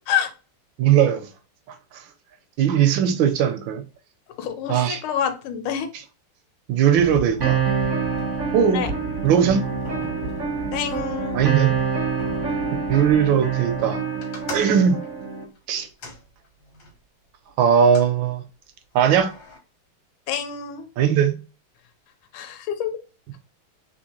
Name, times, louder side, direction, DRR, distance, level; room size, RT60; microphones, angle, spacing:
voice 1, 0.8-1.3 1.7-2.0 2.6-3.8 4.7-5.0 6.7-7.6 8.5-8.8 9.2-9.7 11.3-11.8 12.7-14.0 14.5-15.0 15.7-15.9 17.6-18.4 18.9-19.3 21.0-21.4, right 8 dB, 75° right, 1.1 m, -19 dB
voice 2, 4.4-5.9 8.7-8.9 10.7-11.4 20.3-20.9 22.3-22.9, left 8 dB, 75° left, 1.4 m, -27 dB
sound 1, 6.9-14.3, right 1 dB, 45° left, 1.1 m, -37 dB
sound 2, 7.4-15.4, right 6 dB, 60° right, 0.8 m, -26 dB
sound 3, 14.2-17.0 17.6-18.2 18.9-19.6, left 3 dB, 60° left, 1.5 m, -41 dB
3.6 x 2.8 x 2.8 m
omnidirectional pair, 2.4 m